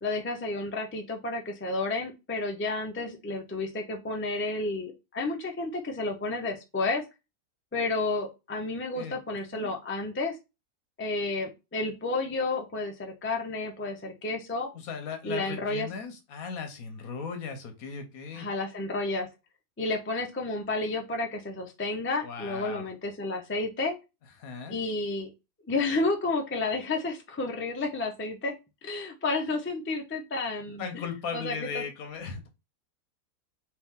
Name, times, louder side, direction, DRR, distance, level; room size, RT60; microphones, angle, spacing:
voice 1, 0.0-7.0 7.7-10.4 11.0-14.7 15.2-15.9 18.4-19.3 19.8-23.9 24.7-25.3 25.7-28.5 28.8-30.8 31.3-31.8, left 3 dB, 20° left, 2 dB, 0.3 m, -31 dB
voice 2, 8.9-9.7 14.7-18.5 22.2-22.9 24.4-24.8 30.8-32.5, left 6 dB, 80° left, 6 dB, 1.3 m, -37 dB
3.4 x 3.0 x 3.6 m, 0.26 s
omnidirectional pair, 1.5 m